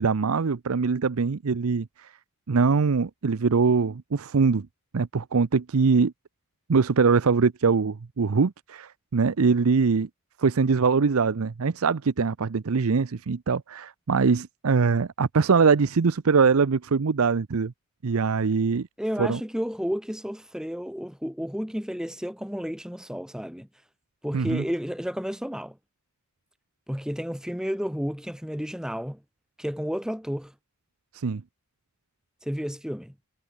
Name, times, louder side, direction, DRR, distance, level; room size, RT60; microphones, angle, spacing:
voice 1, 0.0-2.1 2.5-4.7 4.9-6.1 6.7-10.1 10.4-17.7 18.0-18.9 19.2-19.4 24.3-24.6 31.1-31.4, right 5 dB, 85° right, 0.6 m, -23 dB
voice 2, 19.0-23.7 24.2-25.8 26.9-29.2 29.6-30.5 32.4-33.1, equal, 5° right, 1.8 m, -31 dB
head